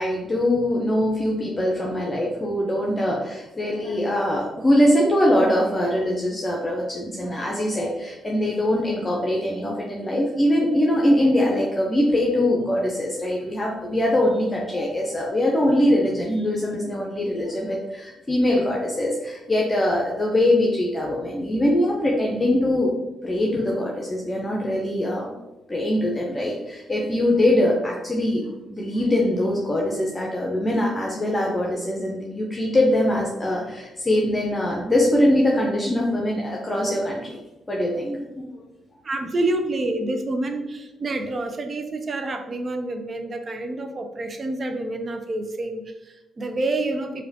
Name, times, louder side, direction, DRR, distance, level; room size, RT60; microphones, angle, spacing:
voice 1, 0.0-22.9 23.2-25.3 25.7-28.4 28.7-37.4 37.7-38.6, left 1 dB, 30° left, -2 dB, 0.7 m, -22 dB
voice 2, 39.0-47.2, right 2 dB, 45° right, 7 dB, 0.4 m, -28 dB
4.7 x 2.3 x 2.8 m, 1.0 s
hypercardioid pair, 40°, 0 cm